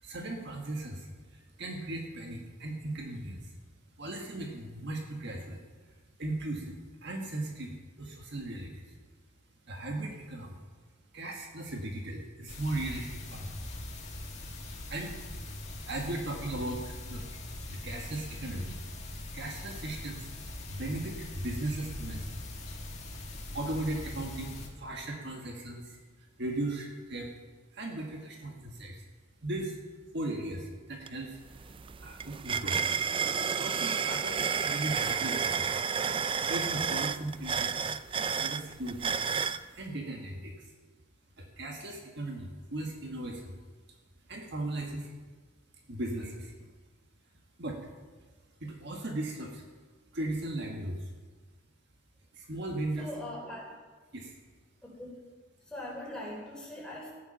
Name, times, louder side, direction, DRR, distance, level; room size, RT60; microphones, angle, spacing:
voice 1, 0.0-3.5 4.0-5.7 6.2-9.0 9.7-10.6 11.1-13.7 14.9-15.2 15.8-17.4 17.7-18.8 19.3-20.3 20.7-22.4 23.5-27.3 27.7-29.1 29.4-29.8 30.1-32.8 33.6-35.8 36.4-37.7 38.3-39.2 39.7-40.7 41.4-43.6 44.3-45.1 45.9-46.5 47.6-47.8 48.6-49.6 50.1-51.1 52.3-53.1 54.1-54.4, right 1 dB, 55° right, 1 dB, 1.5 m, -37 dB
sound 1, 12.5-24.7, left 1 dB, 35° left, 1.8 m, -42 dB
sound 2, 31.1-31.2 31.5-39.6, right 6 dB, 25° right, 0.3 m, -31 dB
voice 2, 53.0-53.7 54.8-55.2 55.6-57.1, left 1 dB, 5° left, -5 dB, 4.2 m, -41 dB
14.0 x 9.5 x 5.7 m, 1.4 s
head